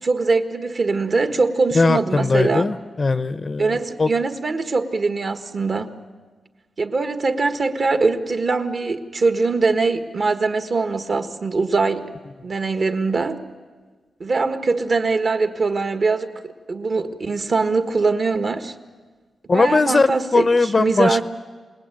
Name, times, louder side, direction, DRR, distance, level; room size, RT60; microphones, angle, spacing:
voice 1, 0.0-2.7 3.6-5.9 6.8-12.0 12.4-13.4 14.2-16.3 16.7-18.7 19.5-20.5 20.8-21.2, right 3 dB, 45° right, 8 dB, 1.6 m, -22 dB
voice 2, 1.7-4.1 19.5-21.2, left 3 dB, 35° left, 13 dB, 0.7 m, -19 dB
27.5 x 19.5 x 9.2 m, 1.4 s
wide cardioid pair, 120°, 0 cm